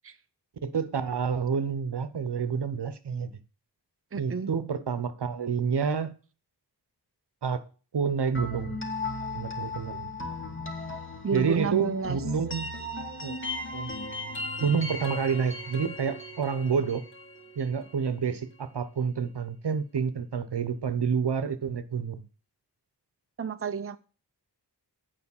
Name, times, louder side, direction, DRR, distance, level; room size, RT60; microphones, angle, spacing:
voice 1, 0.6-3.3 4.1-6.1 7.4-7.6 7.9-8.8 9.3-10.1 11.3-12.7 13.2-13.4 13.7-13.9 14.6-17.1 17.6-22.2, right 6 dB, 80° right, 1.0 m, -28 dB
voice 2, 4.1-4.5 11.2-12.2 23.4-24.0, right 5 dB, 35° right, 0.7 m, -30 dB
sound 1, 8.3-18.1, left 2 dB, 30° left, 2.4 m, -37 dB
8.5 x 5.3 x 7.2 m
wide cardioid pair, 100°, 40 cm